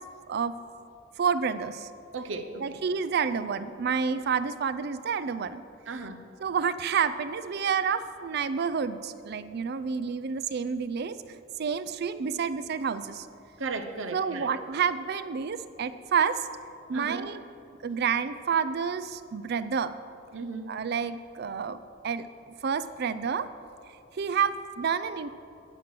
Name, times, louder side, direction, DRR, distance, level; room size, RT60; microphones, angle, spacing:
voice 1, 1.2-1.9 2.6-5.6 6.4-11.2 11.6-13.3 14.1-16.4 16.9-17.4 17.8-19.9 20.7-22.3 22.6-23.5 24.2-25.3, right 6 dB, 55° right, 13 dB, 0.4 m, -29 dB
voice 2, 2.1-2.8 5.9-6.2 13.6-14.5 16.9-17.3 20.3-20.8, right 3 dB, 75° right, 7 dB, 0.8 m, -35 dB
9.9 x 6.1 x 7.3 m, 2.6 s
head